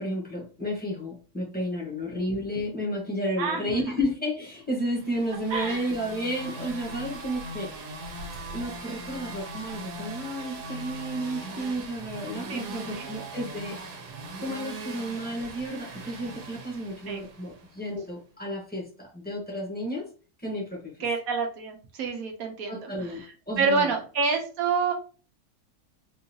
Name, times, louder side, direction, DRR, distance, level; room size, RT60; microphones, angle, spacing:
voice 1, 0.0-7.9 8.5-13.8 14.4-20.1 20.4-20.9 22.7-23.2 23.5-23.9, equal, 5° left, -2 dB, 0.9 m, -32 dB
voice 2, 3.4-3.8 5.5-5.9 12.5-13.1 17.1-17.2 21.0-23.3 23.6-24.9, right 4 dB, 70° right, 2 dB, 1.1 m, -28 dB
sound 1, 4.9-17.8, right 2 dB, 85° right, 1.3 m, -40 dB
3.7 x 2.6 x 2.7 m, 0.37 s
omnidirectional pair, 1.7 m